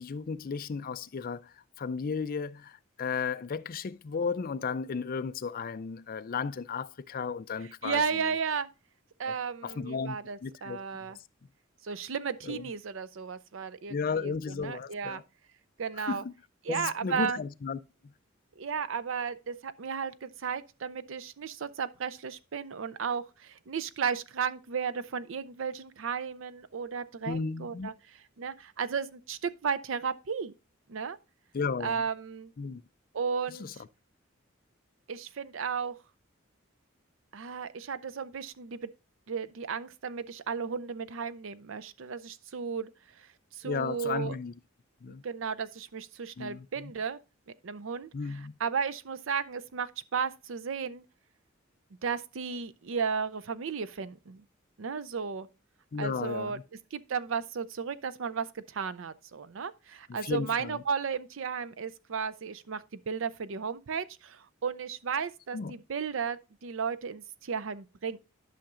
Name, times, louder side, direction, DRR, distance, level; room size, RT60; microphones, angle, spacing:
voice 1, 0.0-8.3 9.3-9.4 9.6-10.2 10.4-10.8 12.4-12.7 13.9-15.2 16.0-16.3 16.7-17.8 27.3-27.9 31.5-32.0 32.6-32.8 33.6-33.7 43.6-44.5 45.0-45.2 46.4-46.9 48.1-48.5 55.9-56.6 60.1-60.8 65.5-65.7, left 5 dB, 45° left, 0.4 m, -34 dB
voice 2, 7.8-8.7 9.2-11.2 11.8-15.2 15.8-16.2 16.6-17.4 18.6-27.9 28.4-30.5 30.9-31.2 31.8-32.5 33.1-33.8 35.1-36.0 37.3-38.9 39.3-42.9 43.2-43.3 43.5-44.4 45.1-47.2 47.6-51.0 52.0-54.4 54.8-55.5 56.0-56.6 56.9-68.2, right 6 dB, 70° right, 0.5 m, -34 dB
11.5 x 5.8 x 2.5 m
head